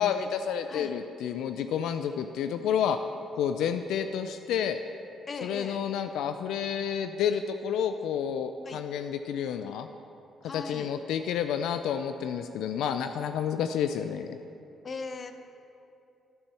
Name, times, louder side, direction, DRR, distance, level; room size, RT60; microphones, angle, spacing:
voice 1, 0.0-3.0 3.3-4.8 5.4-9.9 10.5-14.4, left 8 dB, 85° left, 8 dB, 0.3 m, -30 dB
voice 2, 5.3-5.8 8.7-8.8 10.4-10.9 14.8-15.3, left 4 dB, 40° left, 7 dB, 0.7 m, -38 dB
11.5 x 4.4 x 6.9 m, 2.7 s
cardioid pair, 90°, 0 cm